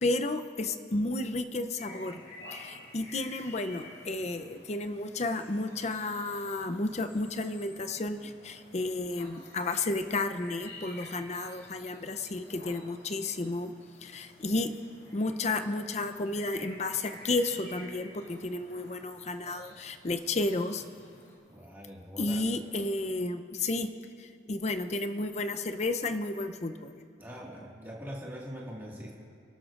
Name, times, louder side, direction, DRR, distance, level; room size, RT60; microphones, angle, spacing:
voice 1, 0.0-2.2 2.5-13.7 14.0-14.7 15.1-20.8 22.2-23.9 24.2-27.0, left 2 dB, 40° left, 8 dB, 0.6 m, -32 dB
sound 1, 1.8-21.4, left 1 dB, 60° left, 3.4 m, -51 dB
voice 2, 21.5-22.4 27.2-29.2, equal, 10° right, -4 dB, 1.8 m, -42 dB
28.0 x 12.0 x 2.5 m, 2.3 s
head